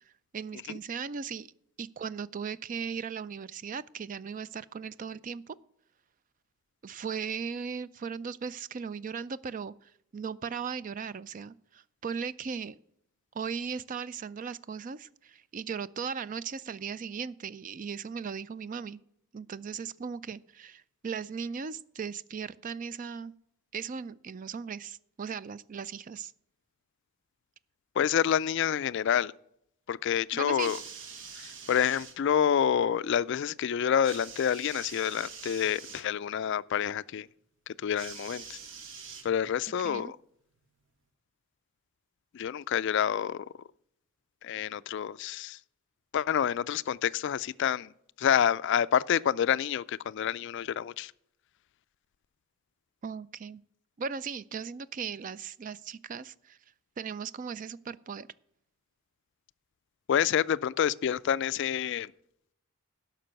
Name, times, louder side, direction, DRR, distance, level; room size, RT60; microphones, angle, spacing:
voice 1, 0.3-1.5 1.8-5.6 6.8-12.8 13.3-19.0 19.3-23.3 23.7-26.3 30.3-30.7 39.8-40.1 53.0-53.6 54.0-56.6 57.0-58.3, right 6 dB, 35° right, 0.3 m, -37 dB
voice 2, 28.0-29.3 29.9-30.8 31.4-37.3 37.8-38.6 39.2-40.2 42.3-43.5 44.4-45.6 46.1-47.9 48.2-51.1 60.1-62.1, left 8 dB, 55° left, 0.3 m, -28 dB
sound 1, 30.5-32.2 34.0-36.1 38.0-39.6 40.6-40.7, right 6 dB, 60° right, 1.3 m, -45 dB
11.5 x 6.0 x 7.7 m
head